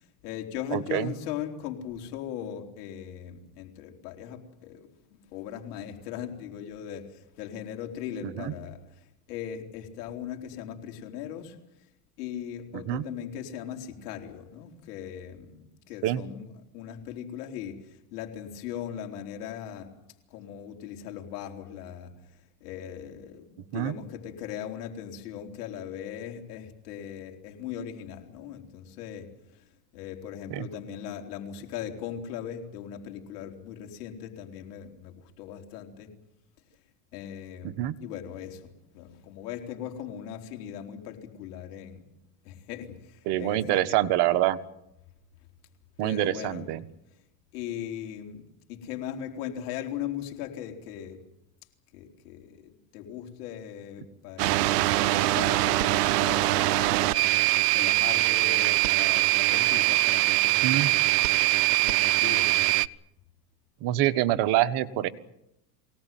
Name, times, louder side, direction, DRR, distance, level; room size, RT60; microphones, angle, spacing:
voice 1, 0.0-11.6 12.2-16.4 16.7-20.0 20.3-22.1 22.6-29.6 29.9-36.1 37.1-42.1 42.4-44.0 46.0-46.7 47.5-51.2 51.9-60.6 61.8-62.7, left 10 dB, 75° left, 3 dB, 4.2 m, -39 dB
voice 2, 0.7-1.1 8.2-8.5 12.7-13.0 16.0-16.2 23.7-23.9 30.5-30.7 37.6-37.9 43.2-44.6 46.0-46.8 60.6-60.9 63.8-65.1, right 14 dB, 60° right, 11 dB, 1.5 m, -26 dB
sound 1, 54.4-62.9, right 18 dB, 85° right, 0.8 m, -23 dB
23.0 x 18.5 x 9.3 m, 0.87 s
supercardioid pair, 110°, 46 cm